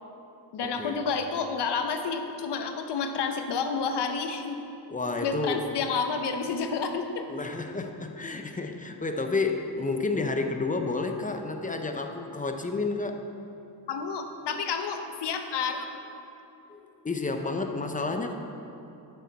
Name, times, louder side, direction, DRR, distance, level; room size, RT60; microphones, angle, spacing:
voice 1, 0.5-4.6 5.2-7.3 13.9-16.0, left 5 dB, 70° left, 6 dB, 0.9 m, -30 dB
voice 2, 4.9-5.7 7.3-13.2 16.7-16.8 17.0-18.3, left 3 dB, 20° left, 5 dB, 0.6 m, -30 dB
11.0 x 6.8 x 4.0 m, 2.8 s
cardioid pair, 100°, 43 cm